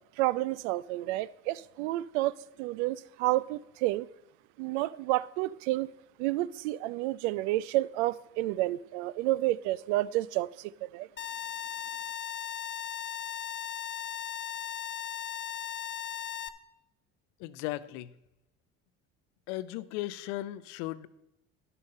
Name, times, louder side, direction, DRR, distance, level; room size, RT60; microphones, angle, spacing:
voice 1, 0.2-4.1 4.6-5.9 6.2-10.5 10.9-11.1, right 17 dB, 80° right, 19 dB, 0.5 m, -30 dB
sound 1, 11.2-16.5, left 11 dB, 35° left, 0.7 m, -37 dB
voice 2, 17.4-18.1 19.5-21.1, left 16 dB, 75° left, 16 dB, 0.6 m, -36 dB
10.0 x 6.9 x 5.4 m, 0.87 s
hypercardioid pair, 70°, 34 cm